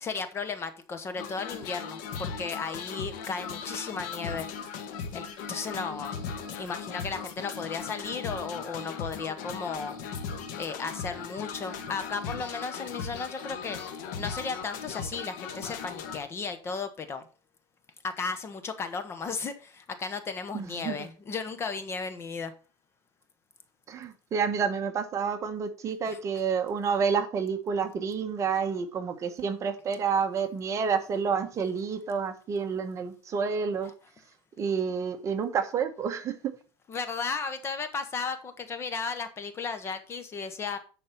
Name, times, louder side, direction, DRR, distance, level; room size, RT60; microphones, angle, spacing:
voice 1, 0.0-4.5 5.1-6.1 6.6-9.9 10.6-13.8 14.2-17.2 18.0-22.5 26.1-26.2 33.8-33.9 36.9-40.8, left 5 dB, 25° left, 1.1 m, -35 dB
sound 1, 1.2-16.2, left 6 dB, 80° left, 1.7 m, -38 dB
voice 2, 20.5-21.1 23.9-33.9 34.6-36.3, right 6 dB, 30° right, 1.1 m, -29 dB
10.5 x 4.2 x 5.9 m
cardioid pair, 145°, 10 cm